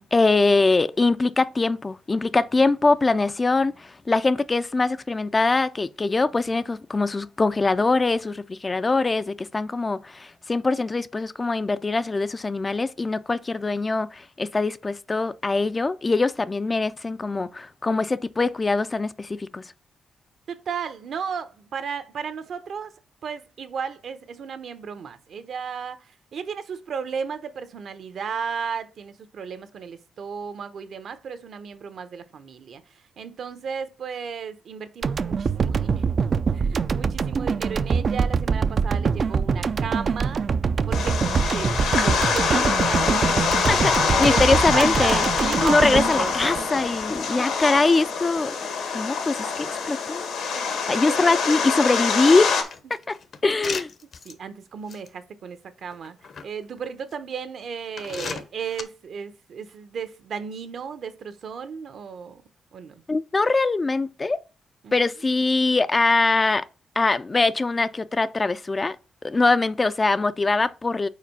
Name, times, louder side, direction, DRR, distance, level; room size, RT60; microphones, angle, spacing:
voice 1, 0.0-19.7 43.7-43.9 44.2-45.2 45.6-50.2 50.9-52.5 52.9-53.2 53.4-53.9 63.1-64.4 64.9-66.7 67.0-69.0 69.2-71.1, left 3 dB, 25° left, 0.4 m, -22 dB
voice 2, 20.5-22.9 23.2-32.8 33.2-36.0 36.5-40.5 40.9-41.2 41.5-46.9 47.4-47.7 48.6-48.8 49.1-49.2 50.5-51.2 51.5-51.8 52.8-52.9 54.2-56.2 56.4-62.4 62.7-63.0 64.8-65.0, right 6 dB, 65° right, 0.9 m, -34 dB
sound 1, 35.0-47.2, right 5 dB, 50° right, 0.4 m, -24 dB
sound 2, 40.9-52.6, left 5 dB, 85° left, 1.8 m, -25 dB
sound 3, 52.0-54.3 54.9-55.1 55.9-56.4 57.1-57.2 58.0-58.8, left 5 dB, 55° left, 0.9 m, -35 dB
4.9 x 4.4 x 5.6 m
cardioid pair, 95°, 0 cm